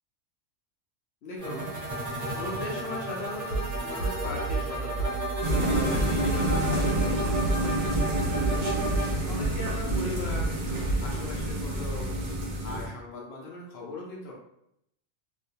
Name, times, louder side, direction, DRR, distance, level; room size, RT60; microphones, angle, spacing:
voice 1, 1.2-5.2 5.6-8.4 9.0-10.6 11.0-12.1 12.4-14.3, left 2 dB, 65° left, -3 dB, 0.7 m, -39 dB
sound 1, 1.4-9.0, right 1 dB, 15° right, 0.8 m, -33 dB
sound 2, 3.5-11.3, right 3 dB, 80° left, 1.0 m, -32 dB
sound 3, 5.4-12.9, right 1 dB, 55° right, 0.7 m, -29 dB
2.5 x 2.0 x 2.7 m, 0.76 s
omnidirectional pair, 1.3 m